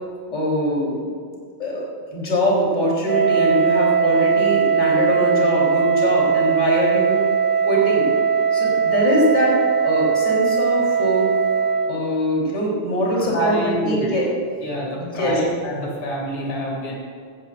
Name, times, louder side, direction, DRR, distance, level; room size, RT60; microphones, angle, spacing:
voice 1, 0.3-1.2 1.6-7.2 7.7-8.1 8.5-11.3 11.8-14.3 15.0-15.4, equal, 15° left, -4 dB, 3.5 m, -22 dB
Wind instrument woodwind instrument, 3.0-11.9, right 6 dB, 50° right, 2.0 m, -19 dB
voice 2, 13.2-14.2 14.6-16.9, right 1 dB, 70° left, -2 dB, 3.8 m, -26 dB
16.5 x 16.0 x 2.5 m, 2.2 s
omnidirectional pair, 3.4 m